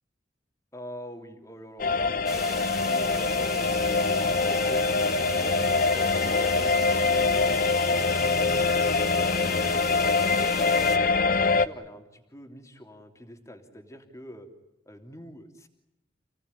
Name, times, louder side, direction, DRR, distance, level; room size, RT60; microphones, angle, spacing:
voice 1, 0.7-2.1 2.6-5.5 5.9-7.7 8.0-11.0 11.4-14.5 14.8-15.7, equal, 15° left, 4 dB, 3.1 m, -45 dB
sound 1, 1.8-11.7, left 4 dB, 50° left, 0.9 m, -24 dB
sound 2, 2.3-11.0, right 1 dB, ahead, 3.2 m, -39 dB
29.5 x 18.0 x 9.8 m, 0.91 s
head